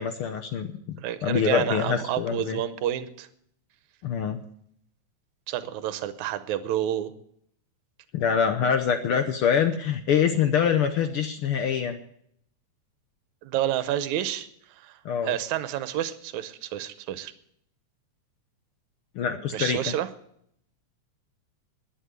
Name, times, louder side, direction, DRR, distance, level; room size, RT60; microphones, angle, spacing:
voice 1, 0.0-1.0 1.2-2.6 4.0-4.4 8.1-12.0 15.0-15.3 19.1-19.8, left 7 dB, 70° left, 7 dB, 1.3 m, -25 dB
voice 2, 1.0-3.3 5.5-7.1 13.4-14.5 14.8-15.0 15.2-17.3 19.5-20.1, right 12 dB, 80° right, 12 dB, 2.2 m, -29 dB
11.5 x 9.9 x 9.4 m, 0.70 s
omnidirectional pair, 3.4 m